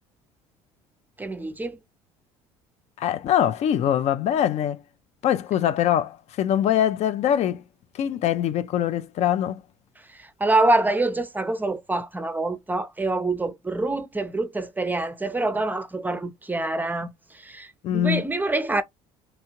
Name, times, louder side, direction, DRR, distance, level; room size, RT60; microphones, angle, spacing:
voice 1, 1.2-1.8 10.1-18.8, right 2 dB, 15° right, 0.5 m, -26 dB
voice 2, 3.0-4.8 5.2-7.6 7.9-9.6 17.8-18.2, left 10 dB, 55° left, 0.4 m, -23 dB
2.8 x 2.3 x 2.9 m
supercardioid pair, 85°, 14 cm